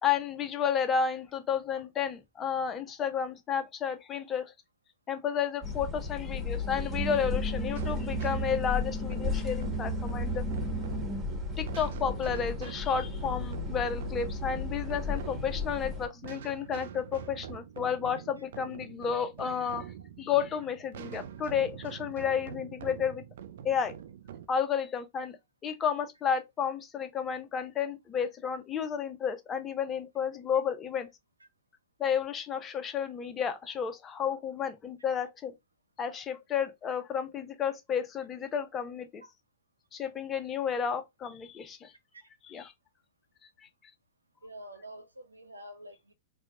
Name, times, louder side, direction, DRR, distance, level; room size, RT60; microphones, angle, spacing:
voice 1, 0.0-4.5 5.1-10.4 11.6-19.8 20.2-23.2 23.6-23.9 24.5-25.4 25.6-31.1 32.0-35.5 36.0-39.2 39.9-41.9 42.5-42.7, left 7 dB, 25° left, 0.6 m, -32 dB
sound 1, 5.6-16.1, left 2 dB, 15° right, 1.3 m, -33 dB
sound 2, 7.8-24.5, right 9 dB, 65° right, 0.4 m, -45 dB
voice 2, 44.4-46.1, right 1 dB, 90° right, 0.8 m, -47 dB
4.3 x 2.2 x 2.8 m
figure-of-eight pair, 100°, 0 cm